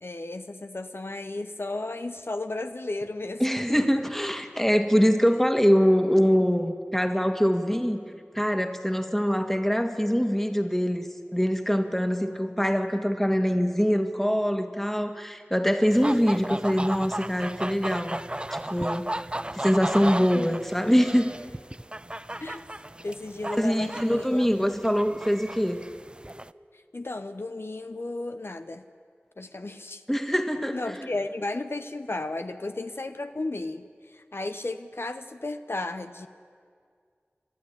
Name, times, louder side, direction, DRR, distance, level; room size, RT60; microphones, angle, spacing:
voice 1, 0.0-3.8 20.2-20.5 22.4-22.6 23.0-24.4 26.9-28.8 29.4-30.0 30.7-36.3, left 2 dB, 65° left, 9 dB, 0.8 m, -34 dB
voice 2, 3.4-8.0 8.3-11.1 11.3-18.2 18.5-19.1 19.5-21.3 23.5-25.8 30.1-31.1, equal, 5° left, 6 dB, 1.8 m, -24 dB
sound 1, 15.9-26.5, right 1 dB, 25° right, 0.5 m, -35 dB
29.5 x 12.0 x 9.9 m, 2.1 s
wide cardioid pair, 40°, 4 cm